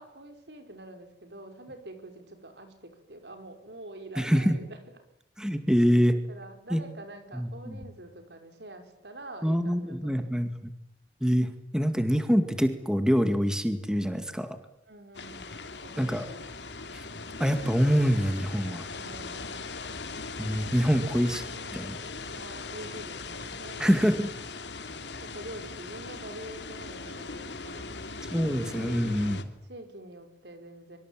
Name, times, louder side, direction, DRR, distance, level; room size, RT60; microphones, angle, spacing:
voice 1, 0.0-5.0 6.3-10.4 14.9-15.6 15.8-16.5 19.0-19.8 20.7-21.8 22.3-24.1 25.2-28.0 29.0-29.3 29.6-31.0, right 1 dB, 70° right, 6 dB, 5.6 m, -46 dB
voice 2, 4.2-4.6 5.4-6.2 6.7-6.8 7.3-7.8 9.4-10.7 11.2-14.6 16.0-16.2 16.9-17.0 17.4-18.9 20.4-21.4 21.7-22.0 23.8-24.3 28.3-29.4, equal, 5° right, 8 dB, 2.0 m, -25 dB
sound 1, 15.1-29.4, left 3 dB, 85° left, 2.9 m, -39 dB
25.0 x 25.0 x 9.1 m, 0.74 s
head